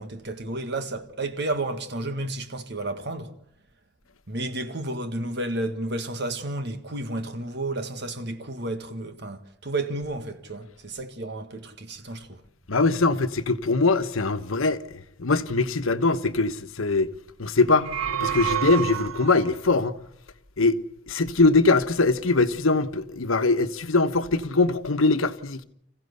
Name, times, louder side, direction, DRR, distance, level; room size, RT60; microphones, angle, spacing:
voice 1, 0.0-3.4 4.3-12.4, right 2 dB, 55° right, 1.8 m, -32 dB
voice 2, 12.7-17.1 17.4-19.9 20.6-20.8 21.1-25.6, left 3 dB, 85° left, 1.2 m, -22 dB
sound 1, 17.6-19.6, right 9 dB, 90° right, 1.2 m, -29 dB
26.5 x 15.5 x 8.2 m
head